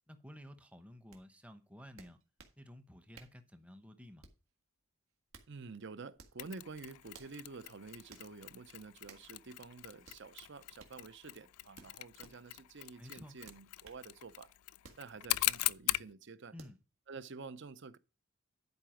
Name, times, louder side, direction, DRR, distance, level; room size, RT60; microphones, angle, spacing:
voice 1, 0.1-2.2 2.6-4.3 13.0-13.4 16.5-16.8, left 1 dB, 5° right, 0.8 m, -53 dB
sound 1, 1.1-1.2 2.0-2.6 3.1-3.4 4.2-4.5 5.1-5.5 6.1-6.4 7.1-7.4 8.1-8.3 9.1-9.3 10.0-10.2 10.8-11.0 11.8-12.4 13.4-14.0 14.8-15.1 15.6-15.8 16.6-16.8, right 4 dB, 70° right, 1.7 m, -57 dB
voice 2, 5.5-14.5 15.0-16.5 17.1-18.0, right 4 dB, 55° right, 0.6 m, -49 dB
Mechanisms, 6.4-16.1, left 18 dB, 85° left, 0.3 m, -41 dB
11.0 x 4.8 x 5.0 m
head